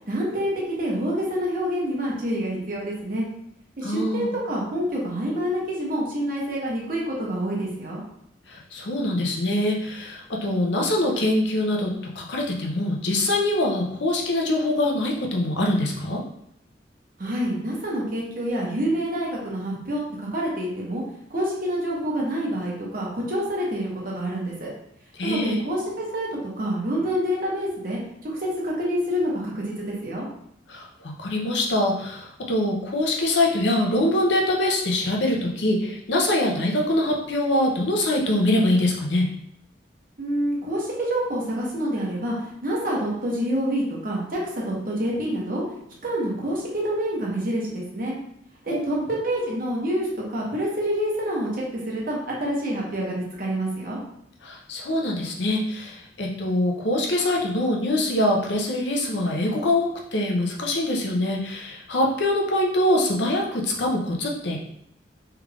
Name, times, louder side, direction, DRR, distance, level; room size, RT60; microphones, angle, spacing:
voice 1, 0.1-3.3 3.8-8.0 17.2-21.0 21.3-24.7 25.2-30.3 40.2-45.6 46.0-48.2 48.7-54.0, equal, 50° right, -3 dB, 1.0 m, -27 dB
voice 2, 3.8-4.3 8.5-11.9 12.2-16.2 25.1-25.6 30.7-39.3 48.7-49.0 54.4-64.6, left 1 dB, 75° left, 0 dB, 0.7 m, -24 dB
3.4 x 2.4 x 3.3 m, 0.75 s
head